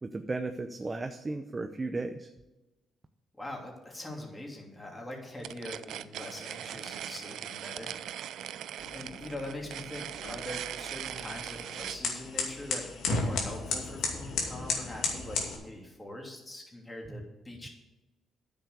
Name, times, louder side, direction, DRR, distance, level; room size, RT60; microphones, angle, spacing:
voice 1, 0.0-2.3 17.1-17.2, right 3 dB, 25° right, 7 dB, 0.7 m, -35 dB
voice 2, 3.4-8.5 8.9-17.7, left 1 dB, 15° left, 0 dB, 3.0 m, -43 dB
sound 1, 5.4-12.0, right 11 dB, 80° right, 0.4 m, -40 dB
sound 2, 8.8-15.6, left 3 dB, 80° left, 2.5 m, -35 dB
9.6 x 7.2 x 6.7 m, 1.0 s
cardioid pair, 90°, 0 cm